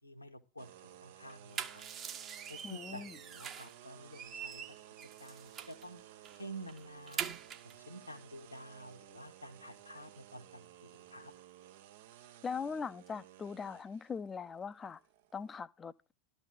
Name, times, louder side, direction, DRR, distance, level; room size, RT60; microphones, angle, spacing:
voice 1, 0.0-1.9 2.5-4.6 5.2-6.0 6.3-7.3 7.6-11.3, right 1 dB, 85° left, 1.5 m, -50 dB
sound 1, 0.6-15.5, right 11 dB, 55° right, 0.7 m, -56 dB
sound 2, 1.3-3.8 4.1-5.8 6.2-6.4 6.7-7.7, right 8 dB, 30° right, 1.0 m, -43 dB
voice 2, 2.6-3.2 12.4-15.0 15.3-16.1, left 5 dB, 20° left, 0.6 m, -41 dB
12.5 x 4.2 x 7.6 m
figure-of-eight pair, 90°, 0 cm